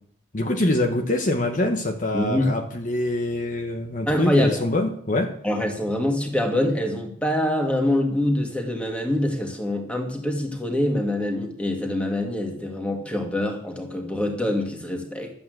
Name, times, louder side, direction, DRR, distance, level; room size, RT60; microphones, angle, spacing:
voice 1, 0.3-5.4, left 1 dB, 40° left, 3 dB, 1.1 m, -24 dB
voice 2, 2.1-2.5 4.1-4.6 5.4-15.3, left 1 dB, 5° left, 2 dB, 2.1 m, -25 dB
11.5 x 8.4 x 8.0 m, 0.65 s
head